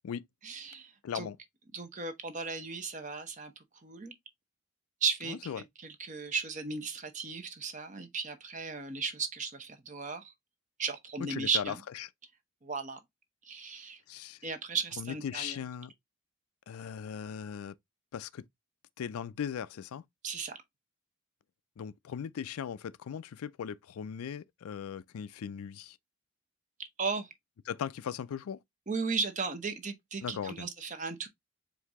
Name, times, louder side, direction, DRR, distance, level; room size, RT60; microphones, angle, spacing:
voice 1, 0.4-1.3 1.7-3.5 3.8-4.1 5.0-10.3 10.8-11.8 12.6-13.0 13.4-14.0 14.4-15.6 20.2-20.6 27.0-27.3 28.9-31.3, right 4 dB, 35° right, 0.8 m, -35 dB
voice 2, 1.0-1.4 5.3-5.6 11.3-12.1 14.1-14.4 15.0-15.9 16.7-17.7 18.1-18.4 19.0-20.0 21.8-26.0 27.7-28.6 30.2-30.7, left 8 dB, 90° left, 0.4 m, -38 dB
4.6 x 2.6 x 3.5 m
head